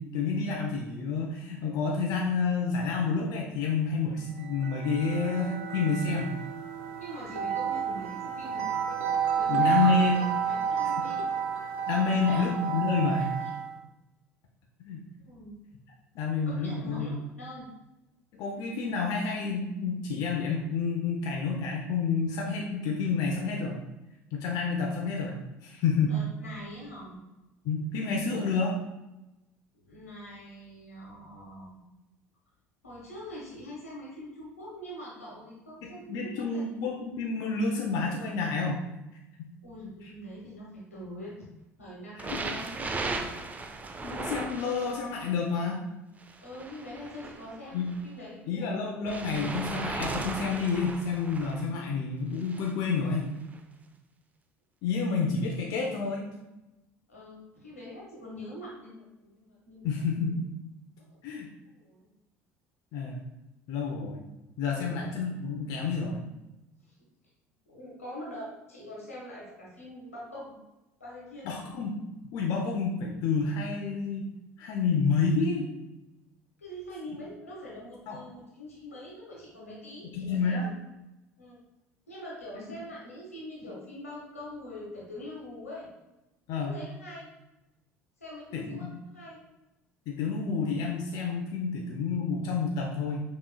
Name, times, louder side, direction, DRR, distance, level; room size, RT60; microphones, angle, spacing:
voice 1, 0.0-6.4 9.5-10.2 11.9-13.3 14.8-15.1 16.1-17.1 18.3-23.8 24.3-26.2 27.6-28.8 36.1-38.8 42.2-42.4 44.0-45.8 47.7-47.9 48.5-53.3 54.8-56.3 59.8-60.5 61.2-61.5 62.9-63.2 63.7-64.2 64.6-66.2 71.4-72.0 72.3-74.2 74.6-75.7 78.1-78.2 80.1-80.7 82.6-82.7 86.5-86.7 88.5-88.9 90.1-93.2, left 4 dB, 55° left, 0 dB, 0.6 m, -29 dB
sound 1, 4.3-13.8, right 7 dB, 70° right, 0.6 m, -31 dB
voice 2, 6.9-8.7 9.3-11.2 12.0-12.5 13.2-13.6 15.2-15.5 16.5-17.7 26.0-27.2 29.7-31.8 32.8-36.6 39.6-41.5 41.8-43.3 46.4-48.7 57.1-59.8 61.0-62.1 64.7-65.0 66.8-66.9 67.7-70.6 71.0-71.5 76.6-80.7 81.4-81.6 82.1-85.9 86.6-87.3 88.2-89.4, left 1 dB, 90° left, -5 dB, 1.3 m, -44 dB
sound 2, 42.2-45.3 46.2-48.0 49.1-51.6 52.4-52.7 53.5-53.6, right 3 dB, 20° right, 0.5 m, -37 dB
5.9 x 3.0 x 2.3 m, 0.97 s
figure-of-eight pair, 65°, 8 cm